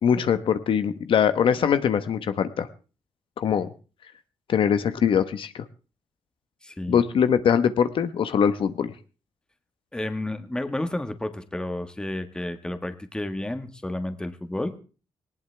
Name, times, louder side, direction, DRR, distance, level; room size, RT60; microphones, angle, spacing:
voice 1, 0.0-2.7 3.4-3.7 4.5-5.6 6.9-8.9, left 8 dB, 65° left, 11 dB, 1.1 m, -22 dB
voice 2, 6.6-7.0 9.9-14.7, left 1 dB, 10° left, 9 dB, 1.5 m, -31 dB
19.0 x 18.5 x 3.4 m, 0.36 s
wide cardioid pair, 150°, 10 cm